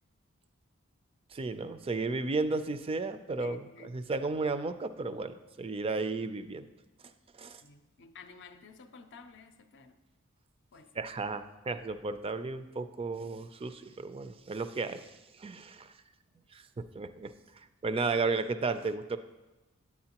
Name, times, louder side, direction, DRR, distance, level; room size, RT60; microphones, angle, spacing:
voice 1, 1.3-6.7 7.4-7.6 11.0-15.1 15.4-15.9 16.5-19.2, right 3 dB, 25° right, 11 dB, 0.4 m, -34 dB
voice 2, 3.4-4.0 7.6-10.0 10.7-10.9, left 4 dB, 60° left, 7 dB, 0.5 m, -52 dB
9.5 x 8.5 x 2.9 m, 1.1 s
head